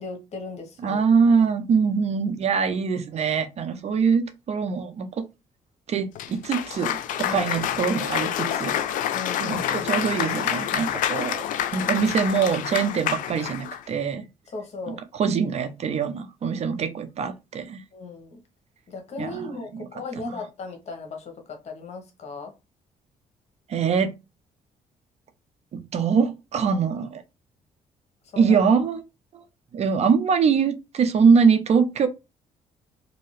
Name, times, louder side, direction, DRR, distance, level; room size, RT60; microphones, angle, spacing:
voice 1, 0.0-1.0 7.2-7.5 9.1-9.9 14.5-15.0 17.9-18.4 18.9-22.5 28.3-28.6, left 3 dB, 50° left, 1.1 m, -37 dB
voice 2, 0.8-5.3 5.9-8.7 9.4-11.4 11.7-14.3 14.9-17.8 19.2-19.9 23.7-24.1 25.7-27.2 28.4-29.0 29.3-29.4 29.7-32.1, right 6 dB, 50° right, 0.5 m, -23 dB
Cheering / Applause, 6.2-13.8, left 10 dB, 70° left, 0.4 m, -28 dB
2.7 x 2.7 x 3.1 m
cardioid pair, 90°, 14 cm